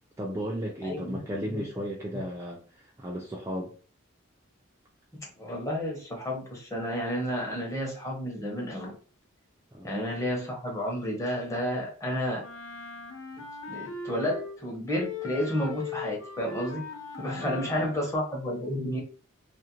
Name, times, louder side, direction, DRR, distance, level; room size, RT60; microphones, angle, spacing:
voice 1, 0.2-3.7 9.7-9.9 17.4-18.0, equal, 15° right, 0.3 m, -35 dB
voice 2, 0.8-1.2 1.5-1.7 2.1-2.2 5.2-8.9 9.8-12.4 13.7-16.8 17.2-19.0, equal, 15° left, 0.7 m, -31 dB
Wind instrument woodwind instrument, 12.4-14.6 14.9-18.0, left 4 dB, 85° left, 0.5 m, -39 dB
2.4 x 2.0 x 2.8 m
head